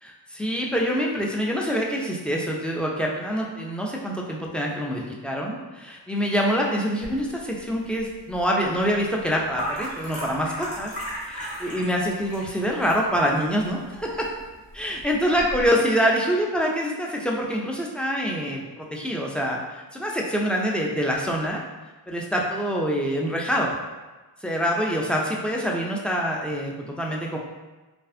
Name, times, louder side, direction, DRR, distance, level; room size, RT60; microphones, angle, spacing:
voice 1, 0.0-10.9 11.2-14.3 14.7-21.6 22.1-23.7 24.4-27.4, equal, 5° left, -2 dB, 0.3 m, -25 dB
sound 1, 7.0-15.7, equal, 65° left, 1.4 m, -37 dB
2.5 x 2.3 x 2.4 m, 1.2 s
cardioid pair, 50°, 43 cm